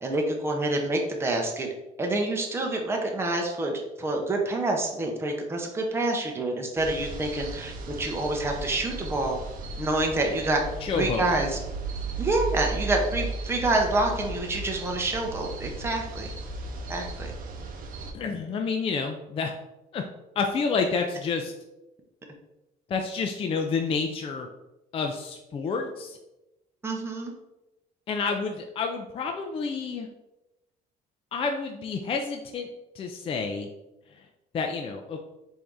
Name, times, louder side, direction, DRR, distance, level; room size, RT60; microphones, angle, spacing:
voice 1, 0.0-1.7 2.0-9.4 9.8-10.6 10.9-11.6 12.2-16.3 16.9-17.3 26.8-27.3, right 2 dB, 15° right, 1 dB, 0.7 m, -27 dB
sound 1, 6.8-18.1, right 3 dB, 55° right, 0.7 m, -35 dB
voice 2, 10.8-11.3 18.1-19.5 19.9-20.0 20.4-21.5 22.9-24.5 24.9-26.2 28.1-30.1 31.3-32.7 33.0-33.7 34.5-35.2, left 4 dB, 35° left, 3 dB, 0.4 m, -29 dB
4.4 x 2.7 x 3.5 m, 0.96 s
cardioid pair, 110°, 17 cm